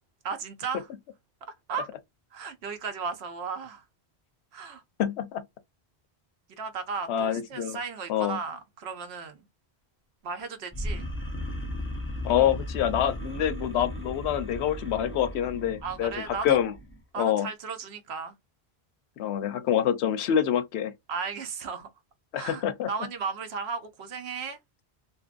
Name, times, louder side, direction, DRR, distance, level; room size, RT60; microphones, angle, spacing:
voice 1, 0.2-0.9 1.7-1.9 2.3-3.8 4.5-4.8 6.5-9.4 10.2-11.1 15.8-16.6 17.1-18.3 21.1-21.9 22.3-24.6, right 5 dB, 80° right, 0.9 m, -35 dB
voice 2, 5.0-5.4 7.1-7.8 8.1-8.4 12.2-16.7 17.2-17.5 19.2-20.9 22.3-22.9, left 10 dB, 85° left, 0.8 m, -26 dB
sound 1, 10.7-17.0, left 1 dB, 15° left, 0.5 m, -36 dB
2.7 x 2.5 x 2.4 m
omnidirectional pair, 1.1 m